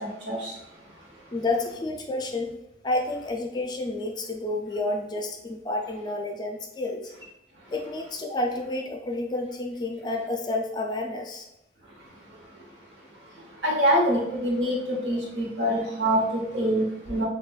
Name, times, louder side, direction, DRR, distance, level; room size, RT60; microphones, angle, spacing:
voice 1, 1.3-2.5 2.8-7.1 7.7-11.5, left 2 dB, 25° left, 2 dB, 0.4 m, -30 dB
voice 2, 13.6-17.3, equal, 85° right, -3 dB, 1.0 m, -25 dB
4.1 x 2.3 x 2.3 m, 0.89 s
head